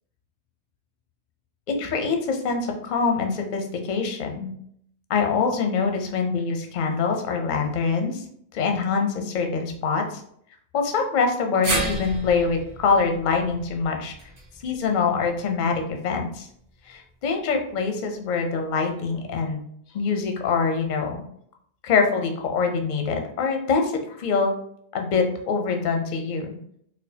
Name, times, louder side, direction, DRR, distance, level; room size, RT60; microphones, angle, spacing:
voice 1, 1.7-4.5 5.1-8.2 8.5-10.2 10.7-14.1 14.6-16.5 16.9-19.6 19.9-21.2 21.8-24.6 24.9-26.6, left 5 dB, 55° left, 4 dB, 0.6 m, -24 dB
sound 1, 11.6-15.9 16.2-16.3 17.5-17.6, right 2 dB, 80° right, 1.4 m, -32 dB
4.3 x 2.1 x 2.7 m, 0.68 s
omnidirectional pair, 1.1 m